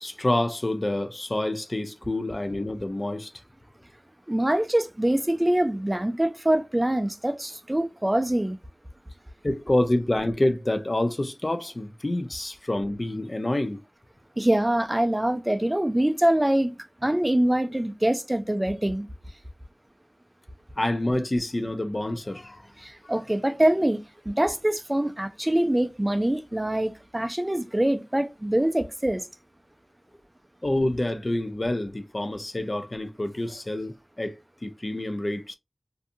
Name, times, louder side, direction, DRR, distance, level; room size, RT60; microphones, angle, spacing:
voice 1, 0.0-3.3 9.4-13.8 20.8-22.6 30.6-35.6, left 1 dB, 45° left, 0.5 m, -27 dB
voice 2, 4.3-8.6 14.4-16.7 17.0-19.1 22.8-29.3, right 1 dB, 20° right, 0.4 m, -24 dB
2.6 x 2.3 x 2.5 m
wide cardioid pair, 40°, 0 cm